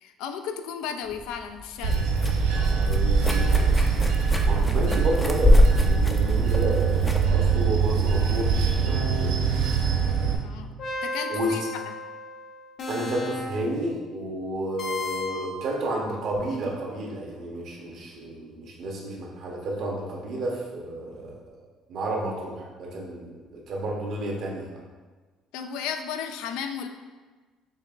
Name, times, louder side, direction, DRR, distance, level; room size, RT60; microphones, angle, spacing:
voice 1, 0.0-2.1 10.4-10.7 11.0-11.6 25.5-26.9, left 7 dB, 85° left, 7 dB, 0.3 m, -34 dB
sound 1, 1.1-8.9, left 1 dB, 10° left, 0.4 m, -25 dB
Bell / Train, 1.8-10.4, right 5 dB, 85° right, 0.5 m, -23 dB
voice 2, 2.5-9.8 11.3-11.6 12.9-21.4 21.9-24.7, right 1 dB, 60° right, -2 dB, 0.9 m, -31 dB
sound 2, 8.8-13.8 14.8-15.6, equal, 55° left, 0.8 m, -34 dB
5.2 x 3.0 x 2.5 m, 1.4 s
cardioid pair, 115°, 0 cm